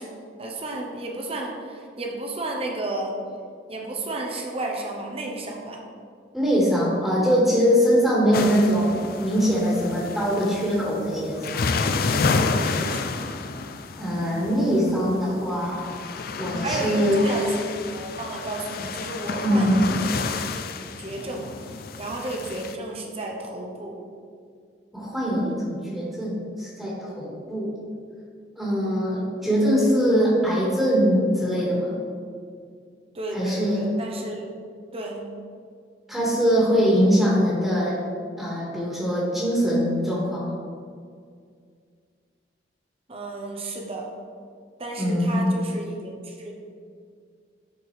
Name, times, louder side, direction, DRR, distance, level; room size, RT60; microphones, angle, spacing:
voice 1, 0.0-3.1 3.7-5.8 12.5-13.2 16.6-20.6 21.0-21.5 22.0-24.0 33.1-34.4 34.9-35.3 43.1-44.0 44.8-46.5, right 2 dB, 35° right, 0 dB, 0.9 m, -32 dB
voice 2, 6.3-11.7 14.0-16.0 16.4-17.3 19.4-19.9 24.9-27.7 28.6-32.0 33.3-33.9 36.1-38.0 38.4-40.5 45.0-45.5, equal, 5° right, -8 dB, 1.8 m, -22 dB
sound 1, 8.3-22.8, left 4 dB, 55° left, 0.4 m, -30 dB
11.5 x 4.5 x 3.3 m, 2.2 s
head